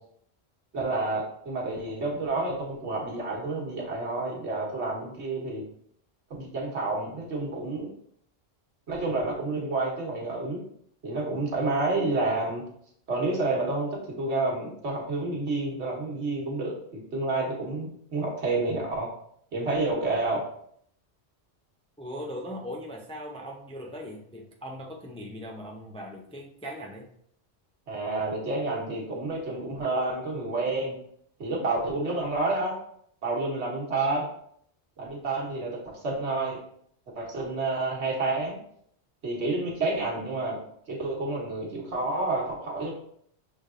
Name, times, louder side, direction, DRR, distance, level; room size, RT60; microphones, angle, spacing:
voice 1, 0.7-5.6 6.3-7.9 8.9-10.6 11.0-12.6 13.1-19.1 19.5-20.4 27.9-30.9 31.4-32.7 33.2-34.3 35.0-36.6 37.1-38.6 39.2-40.6 40.9-42.9, right 2 dB, 85° right, -3 dB, 1.5 m, -29 dB
voice 2, 22.0-27.1, equal, 10° left, 0 dB, 0.3 m, -39 dB
6.3 x 3.3 x 2.5 m, 0.67 s
omnidirectional pair, 1.1 m